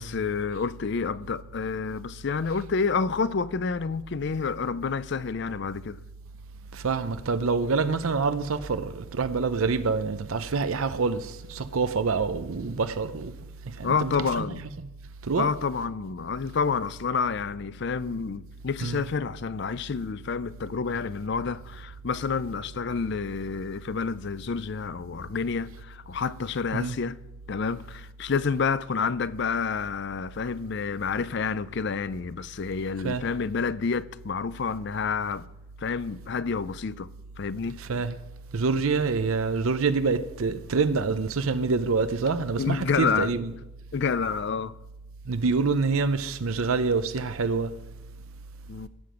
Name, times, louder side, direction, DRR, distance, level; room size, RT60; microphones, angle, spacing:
voice 1, 0.0-6.0 13.8-14.6 15.4-27.2 27.5-35.4 35.8-37.1 37.4-37.8 42.6-43.3 43.9-44.7 48.7-48.9, left 5 dB, 55° left, 0.4 m, -29 dB
voice 2, 6.7-13.4 13.7-14.7 15.2-15.5 18.8-19.1 26.7-27.0 33.0-33.3 37.8-38.2 38.5-43.5 45.3-47.8, right 4 dB, 75° right, 0.6 m, -26 dB
18.0 x 7.7 x 5.0 m
head